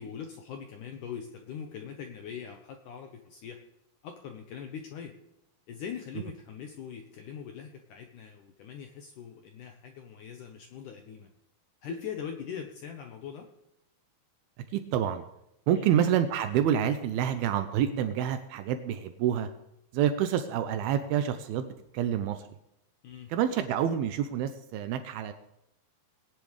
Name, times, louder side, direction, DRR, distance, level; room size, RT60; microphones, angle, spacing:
voice 1, 0.0-3.6 4.0-5.1 5.7-11.3 11.8-13.5 15.7-15.9 23.0-23.3, left 7 dB, 75° left, 4 dB, 2.1 m, -41 dB
voice 2, 14.7-15.2 15.7-19.5 19.9-22.5 23.3-25.3, right 9 dB, 85° right, 9 dB, 2.5 m, -28 dB
19.0 x 10.5 x 3.3 m, 0.84 s
omnidirectional pair, 4.5 m